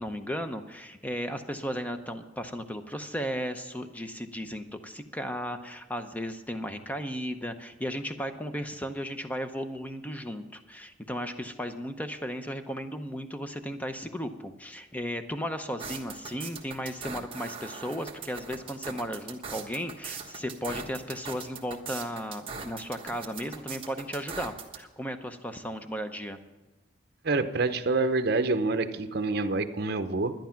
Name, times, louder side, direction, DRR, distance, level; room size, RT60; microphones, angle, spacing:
voice 1, 0.0-26.4, equal, 10° left, 8 dB, 0.7 m, -35 dB
sound 1, 15.8-24.8, right 5 dB, 30° right, 1.3 m, -40 dB
voice 2, 27.2-30.3, right 3 dB, 55° right, 9 dB, 0.8 m, -27 dB
11.5 x 10.5 x 5.8 m, 1.1 s
head